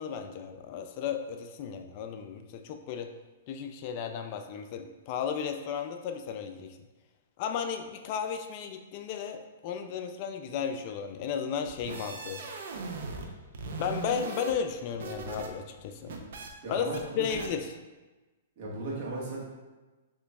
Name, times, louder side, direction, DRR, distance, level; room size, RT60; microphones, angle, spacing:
voice 1, 0.0-3.1 3.5-6.8 7.4-12.4 13.8-16.1 16.7-17.7, left 7 dB, 40° left, 6 dB, 0.3 m, -34 dB
sound 1, 11.6-13.3 13.5-15.5 15.8-16.5 16.9-17.0 17.3-17.5, right 4 dB, 70° right, 0.6 m, -39 dB
voice 2, 16.6-17.3 18.6-19.4, right 2 dB, 50° right, -4 dB, 1.5 m, -36 dB
6.8 x 3.0 x 2.3 m, 1.2 s
hypercardioid pair, 140°, 0 cm